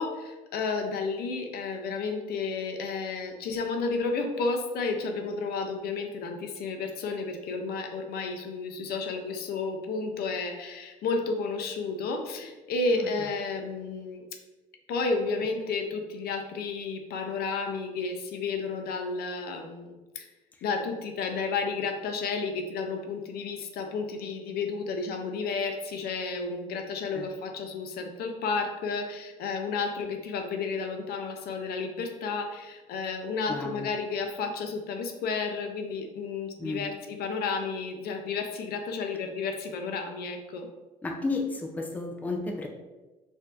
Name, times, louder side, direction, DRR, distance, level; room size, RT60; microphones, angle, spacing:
voice 1, 0.0-14.2 14.9-20.3 20.6-40.7, left 4 dB, 65° left, 4 dB, 0.6 m, -32 dB
voice 2, 33.5-33.9 36.6-36.9 41.0-42.7, left 3 dB, 10° left, 2 dB, 0.4 m, -32 dB
4.5 x 2.7 x 2.4 m, 1.1 s
cardioid pair, 110°, 17 cm